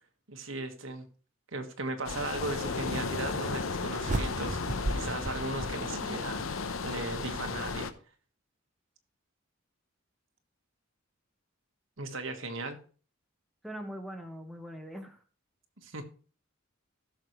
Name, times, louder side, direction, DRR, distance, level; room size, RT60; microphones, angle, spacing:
voice 1, 0.3-1.1 1.5-7.9 12.0-12.8 15.8-16.0, right 2 dB, 75° right, 5 dB, 1.6 m, -37 dB
sound 1, 2.0-7.9, left 4 dB, 85° left, 0.8 m, -34 dB
sound 2, 4.0-6.4, right 1 dB, 40° right, 0.8 m, -34 dB
voice 2, 13.6-15.2, equal, ahead, 5 dB, 1.1 m, -42 dB
15.5 x 6.6 x 3.2 m, 0.40 s
head